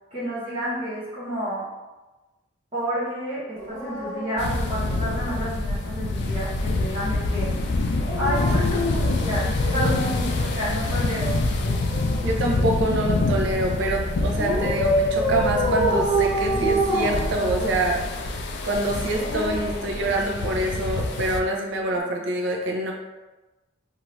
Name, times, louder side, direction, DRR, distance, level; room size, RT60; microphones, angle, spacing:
voice 1, 0.1-1.7 2.7-7.5 8.2-11.4, equal, 30° right, -12 dB, 0.9 m, -30 dB
Dog, 3.5-5.4 7.9-10.3 11.5-13.2 14.3-17.9 18.9-20.5 21.8-22.0, right 1 dB, 20° left, 1.0 m, -28 dB
sound 1, 4.4-21.4, left 2 dB, 60° left, 0.3 m, -26 dB
voice 2, 12.2-18.2 18.6-22.9, right 1 dB, 65° right, 0 dB, 0.5 m, -26 dB
2.6 x 2.3 x 3.0 m, 1.1 s
head